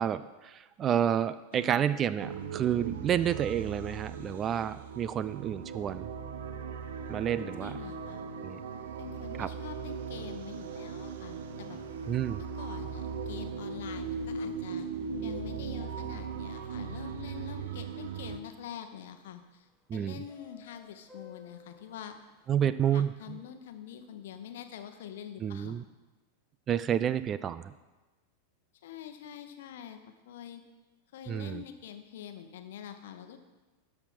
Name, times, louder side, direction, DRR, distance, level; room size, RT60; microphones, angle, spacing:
voice 1, 0.0-6.1 7.1-7.7 8.4-8.6 9.4-9.5 12.1-12.4 19.9-20.2 22.5-23.4 25.4-25.8 26.7-27.7 31.3-31.6, right 9 dB, 25° right, 15 dB, 0.4 m, -30 dB
voice 2, 1.5-2.0 7.4-8.3 9.0-11.8 12.4-14.9 15.2-22.2 22.6-25.8 28.8-30.0 30.3-30.6 31.1-33.4, left 9 dB, 55° left, 8 dB, 1.0 m, -45 dB
sound 1, 2.2-18.4, right 5 dB, 60° right, 0.8 m, -38 dB
sound 2, 11.8-23.1 23.9-24.0 24.4-24.6 25.2-25.3, left 5 dB, 5° right, 1.3 m, -61 dB
12.5 x 5.8 x 6.1 m, 1.2 s
figure-of-eight pair, 90°, 0 cm